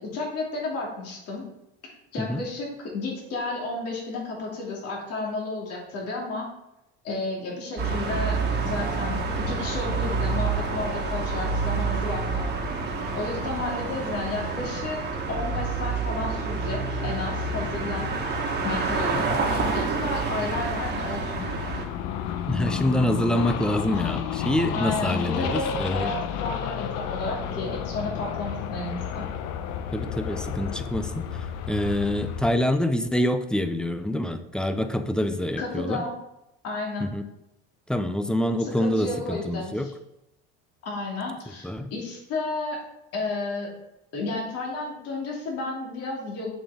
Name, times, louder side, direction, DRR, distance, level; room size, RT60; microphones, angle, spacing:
voice 1, 0.0-1.4 2.1-6.5 7.0-9.2 9.5-12.5 13.1-15.0 15.3-18.1 18.6-21.5 24.7-29.2 35.6-36.1 36.6-37.1 38.6-39.9 40.8-42.8 43.1-43.7 44.1-46.5, left 2 dB, 55° left, -2 dB, 2.7 m, -32 dB
sound 1, 7.8-21.8, right 3 dB, 35° right, 1.5 m, -28 dB
sound 2, 20.5-32.5, left 8 dB, 75° left, 0.8 m, -32 dB
voice 2, 22.5-26.1 29.9-36.0 37.0-37.2 37.9-39.9 41.6-41.9, left 1 dB, 5° left, 9 dB, 0.4 m, -26 dB
7.1 x 5.3 x 3.6 m, 0.90 s
supercardioid pair, 115°, 29 cm